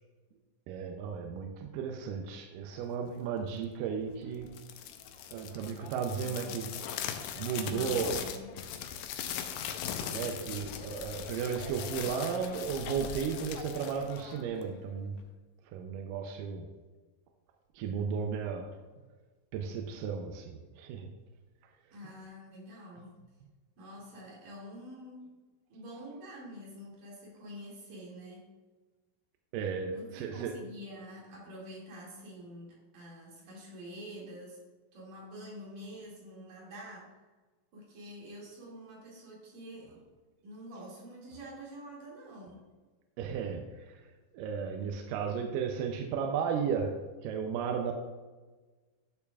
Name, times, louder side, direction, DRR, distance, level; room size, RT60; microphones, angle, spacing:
voice 1, 0.7-4.6 5.3-6.7 7.1-8.2 10.1-15.2 15.7-16.7 17.7-18.8 19.5-21.1 29.5-30.6 43.2-44.0 44.3-47.9, right 6 dB, 80° right, 4 dB, 2.0 m, -34 dB
sound 1, 4.4-14.8, left 8 dB, 80° left, 2.0 m, -40 dB
voice 2, 6.2-6.5 7.5-8.5 21.9-23.2 23.8-25.4 25.7-28.5 29.9-34.6 34.9-37.2 37.7-40.0 40.4-42.7, equal, 65° right, -5 dB, 3.7 m, -47 dB
9.7 x 7.0 x 2.3 m, 1.3 s
omnidirectional pair, 4.2 m